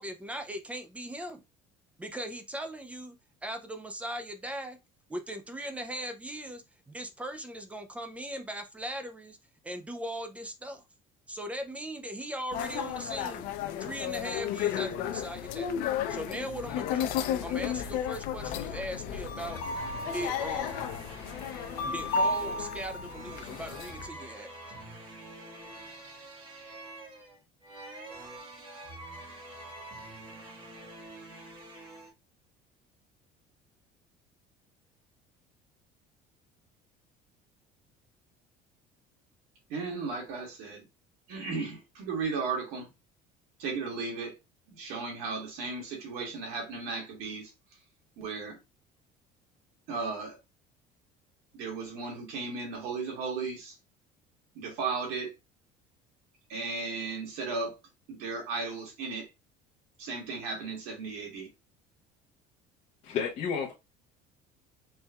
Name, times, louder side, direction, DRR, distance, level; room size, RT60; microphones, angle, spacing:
voice 1, 0.0-1.4 2.0-3.2 3.4-4.8 5.1-6.6 6.9-9.4 9.6-10.8 11.3-13.5 13.8-15.7 16.1-19.6 20.0-20.8 21.8-24.5, right 1 dB, 10° right, 0.4 m, -39 dB
sound 1, 12.5-24.1, left 6 dB, 65° left, 0.5 m, -33 dB
sound 2, 19.5-32.1, right 2 dB, 30° right, 1.3 m, -46 dB
voice 2, 39.7-40.8 41.3-42.9 43.6-44.3 44.7-47.5 48.2-48.6 49.9-50.4 51.5-53.8 54.5-55.3 56.5-57.8 58.1-59.3 60.0-61.5, right 4 dB, 80° right, 2.0 m, -35 dB
voice 3, 63.0-63.7, left 6 dB, 40° left, 0.9 m, -31 dB
4.5 x 3.3 x 2.3 m
cardioid pair, 170°, 16 cm